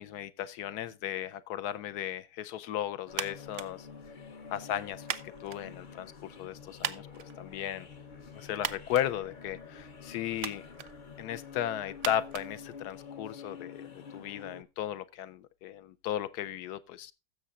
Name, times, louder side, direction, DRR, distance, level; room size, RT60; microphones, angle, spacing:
voice 1, 0.0-3.9 4.5-7.1 7.4-7.9 8.4-10.7 11.2-17.1, left 11 dB, 70° left, 1.1 m, -36 dB
sound 1, 3.1-14.6, left 6 dB, 40° left, 0.7 m, -48 dB
sound 2, 3.1-13.3, right 10 dB, 65° right, 0.8 m, -43 dB
16.0 x 7.1 x 2.3 m
omnidirectional pair, 1.8 m